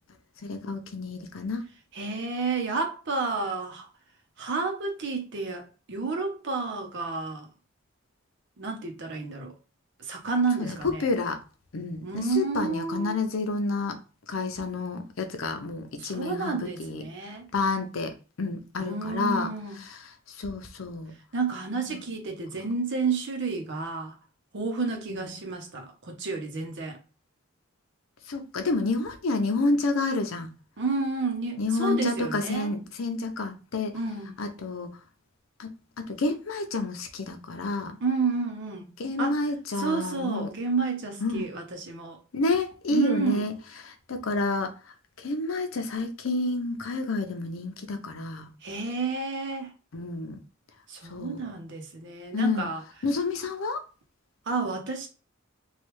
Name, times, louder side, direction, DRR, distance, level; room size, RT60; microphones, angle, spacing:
voice 1, 0.4-1.6 10.6-11.4 11.7-14.0 14.3-17.0 17.5-19.5 20.0-21.1 21.9-22.0 25.1-25.2 28.3-30.5 31.6-34.0 34.4-34.9 35.6-38.0 39.0-40.5 41.2-41.5 42.3-43.5 43.9-44.7 45.2-48.5 49.9-50.4 51.1-51.4 52.3-52.7 53.0-53.8, left 3 dB, 90° left, 0.6 m, -29 dB
voice 2, 1.9-3.9 4.4-7.5 8.6-9.5 10.0-11.0 12.0-13.2 16.0-17.5 18.8-19.8 21.3-24.2 24.5-27.0 30.8-32.7 33.9-34.3 38.0-38.9 39.2-39.4 39.8-42.2 42.9-43.5 48.6-49.7 50.9-52.8 54.5-55.1, right 4 dB, 60° right, 0.8 m, -30 dB
3.2 x 2.3 x 3.0 m
head